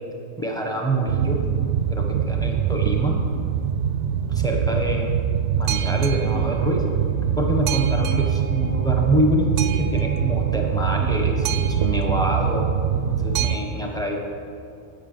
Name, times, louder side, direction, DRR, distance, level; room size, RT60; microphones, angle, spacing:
voice 1, 0.4-1.4 1.9-3.2 4.3-5.2 5.5-6.8 7.4-12.7 13.1-14.2, right 1 dB, 5° left, 0 dB, 1.2 m, -25 dB
Boat Water vehicle, 1.1-13.6, right 8 dB, 70° right, 0.8 m, -23 dB
9.1 x 8.5 x 6.7 m, 2.4 s
omnidirectional pair, 1.3 m